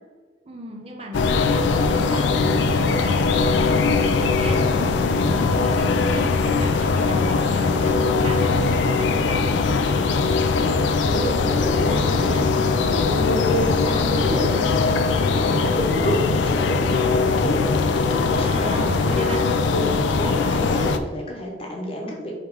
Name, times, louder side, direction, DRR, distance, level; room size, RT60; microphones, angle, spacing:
voice 1, 0.5-9.6 18.4-19.5, right 1 dB, 35° right, 1 dB, 0.5 m, -35 dB
sound 1, 1.1-21.0, left 4 dB, 85° left, 0.4 m, -21 dB
voice 2, 10.5-19.3 19.7-22.4, equal, 30° left, -1 dB, 0.9 m, -29 dB
4.7 x 3.1 x 3.5 m, 1.5 s
head